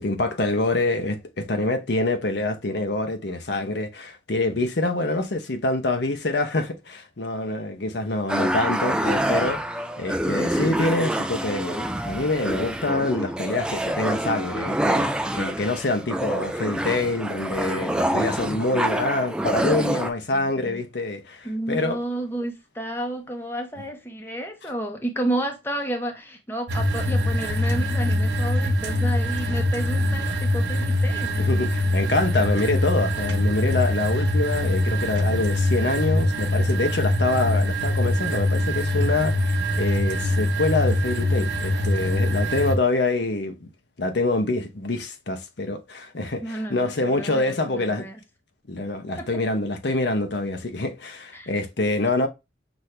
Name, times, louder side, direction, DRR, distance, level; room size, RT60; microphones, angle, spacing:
voice 1, 0.0-22.0 31.4-43.7 44.0-48.1 48.7-52.3, left 2 dB, 65° left, 0.8 m, -26 dB
sound 1, 8.3-20.1, right 1 dB, 5° right, 0.3 m, -26 dB
voice 2, 20.3-20.8 21.4-31.4 46.4-48.2 49.2-49.3 51.3-51.5, right 1 dB, 10° left, 0.9 m, -31 dB
sound 2, 26.7-42.8, left 1 dB, 70° right, 1.2 m, -23 dB
6.0 x 2.7 x 3.2 m
head